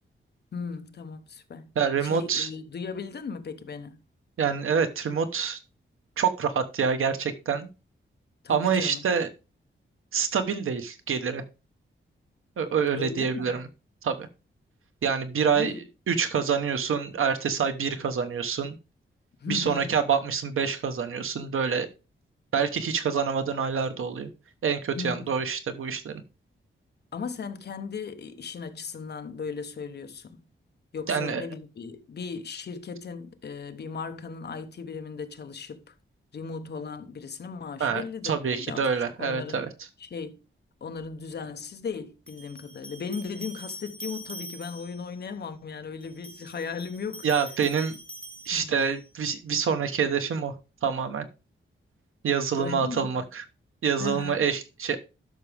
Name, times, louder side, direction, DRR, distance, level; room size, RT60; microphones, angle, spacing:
voice 1, 0.5-1.7 2.0-4.0 8.4-9.0 13.0-13.6 15.5-15.8 19.4-20.0 24.9-25.3 27.1-30.4 30.9-35.9 36.3-38.9 39.2-39.7 40.0-40.4 40.8-47.3 48.5-48.7 52.6-53.2 54.0-54.5, left 5 dB, 55° left, 1.0 m, -37 dB
voice 2, 1.7-2.5 4.4-5.6 6.2-7.7 8.5-9.3 10.1-11.4 12.6-13.6 14.0-14.3 15.0-15.7 16.1-18.7 19.5-21.9 22.5-24.3 24.6-26.2 31.1-31.4 37.8-39.7 47.2-48.0 48.5-50.5 50.8-51.2 52.2-53.4 53.8-55.0, right 6 dB, 85° right, 1.2 m, -26 dB
sound 1, 42.3-45.1 46.0-49.1, right 1 dB, 5° left, 1.9 m, -44 dB
11.5 x 6.2 x 3.4 m
wide cardioid pair, 170°, 21 cm